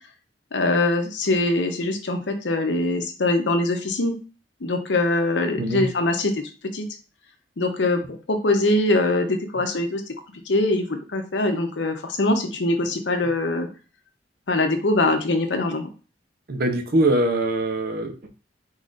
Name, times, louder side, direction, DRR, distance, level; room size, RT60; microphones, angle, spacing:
voice 1, 0.5-4.2 4.6-6.4 6.7-6.9 7.6-10.0 10.5-13.7 14.5-15.9, left 2 dB, 85° left, 0.8 m, -23 dB
voice 2, 16.5-18.3, right 1 dB, 60° right, 0.7 m, -22 dB
4.1 x 3.9 x 2.5 m
head